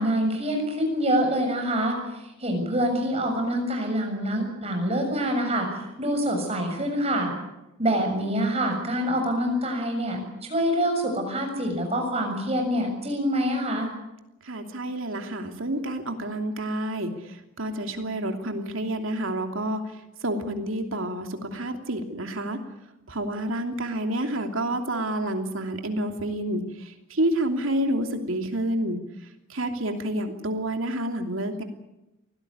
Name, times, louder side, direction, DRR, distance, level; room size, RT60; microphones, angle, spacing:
voice 1, 0.0-2.0 2.4-7.3 7.8-10.2 10.5-13.9, equal, 30° right, 3 dB, 6.9 m, -25 dB
voice 2, 14.5-17.1 17.6-19.8 20.2-22.6 23.1-26.6 27.1-29.0 29.5-31.6, right 1 dB, 70° right, 5 dB, 2.9 m, -28 dB
23.5 x 17.0 x 9.6 m, 0.92 s
head